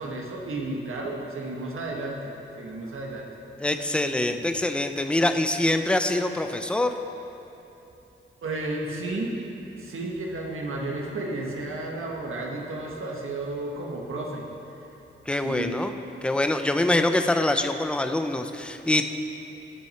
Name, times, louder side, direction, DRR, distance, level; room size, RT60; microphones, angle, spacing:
voice 1, 0.0-3.3 4.3-4.4 8.4-9.3 9.8-14.4 15.4-15.8, right 2 dB, 90° right, -1 dB, 1.6 m, -32 dB
voice 2, 3.6-6.9 15.3-15.9 16.2-19.1, left 1 dB, 5° left, 7 dB, 0.4 m, -24 dB
16.5 x 6.0 x 4.4 m, 3.0 s
wide cardioid pair, 160°, 21 cm